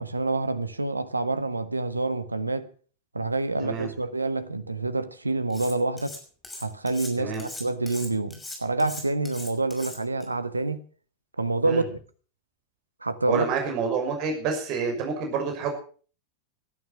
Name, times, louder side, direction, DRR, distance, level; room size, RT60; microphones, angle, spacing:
voice 1, 0.0-2.7 3.1-6.2 6.6-10.8 11.4-12.0 13.0-13.5, right 2 dB, 80° right, 1.4 m, -27 dB
Cutlery silverware, 5.5-6.2 6.4-10.2, left 2 dB, 10° left, 6.1 m, -40 dB
voice 2, 13.3-15.7, right 5 dB, 40° right, 6.2 m, -28 dB
18.5 x 13.0 x 6.0 m
figure-of-eight pair, 90°, 0 cm